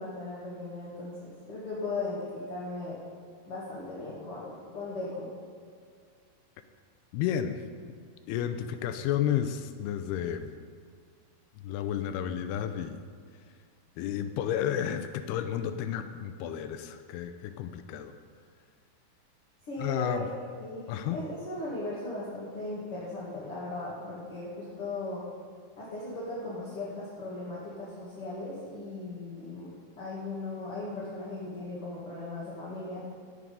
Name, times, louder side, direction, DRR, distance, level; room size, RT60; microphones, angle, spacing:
voice 1, 0.0-3.0 3.5-5.3 19.6-20.2 20.6-25.2 25.8-29.7 30.0-33.0, left 2 dB, 40° left, -7 dB, 2.3 m, -37 dB
voice 2, 7.1-7.6 8.3-10.5 11.6-13.0 14.0-18.1 19.8-20.3 20.9-21.2, left 10 dB, 80° left, 9 dB, 2.5 m, -31 dB
17.0 x 6.4 x 5.4 m, 2.2 s
omnidirectional pair, 4.9 m